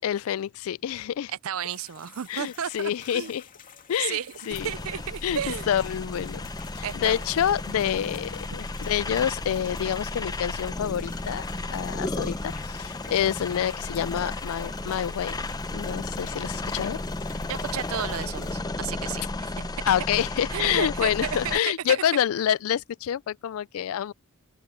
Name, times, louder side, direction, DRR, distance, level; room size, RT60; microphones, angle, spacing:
voice 1, 0.0-1.3 2.3-3.4 3.9-4.2 4.5-4.7 5.2-6.4 6.8-15.4 15.7-17.0 19.9-24.1, left 9 dB, 70° left, 0.3 m, -27 dB
voice 2, 1.4-3.3 4.1-5.7 6.8-7.3 17.4-19.7 20.5-21.6 21.9-22.0, right 9 dB, 70° right, 0.5 m, -33 dB
sound 1, 1.7-18.5, left 7 dB, 40° left, 2.4 m, -50 dB
sound 2, 4.5-21.6, left 2 dB, 20° left, 0.6 m, -33 dB
open air
head